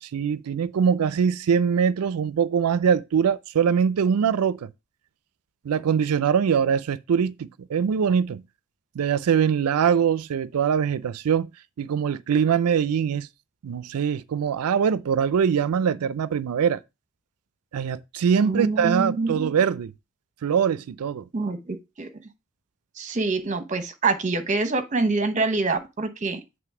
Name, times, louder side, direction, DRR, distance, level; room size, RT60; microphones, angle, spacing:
voice 1, 0.0-4.7 5.6-8.4 9.0-11.5 11.8-13.3 13.6-16.8 17.7-19.9 20.4-21.2, right 7 dB, 80° right, 0.4 m, -23 dB
voice 2, 18.4-19.5 21.3-22.1 23.0-26.4, right 3 dB, 35° right, 0.9 m, -26 dB
7.7 x 3.2 x 5.9 m
head